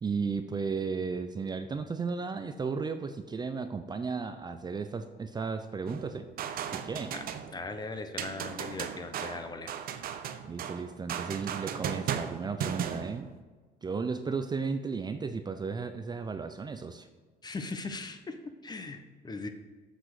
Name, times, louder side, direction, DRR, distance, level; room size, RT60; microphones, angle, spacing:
voice 1, 0.0-6.3 6.7-7.1 10.5-13.3 13.8-17.1, right 5 dB, 25° right, 8 dB, 0.5 m, -34 dB
sound 1, 5.9-7.8 8.2-13.4, right 8 dB, 60° right, 0.8 m, -37 dB
voice 2, 7.5-9.7 17.4-19.5, left 3 dB, 25° left, 7 dB, 0.9 m, -39 dB
7.6 x 6.1 x 6.6 m, 1.3 s
cardioid pair, 110°, 17 cm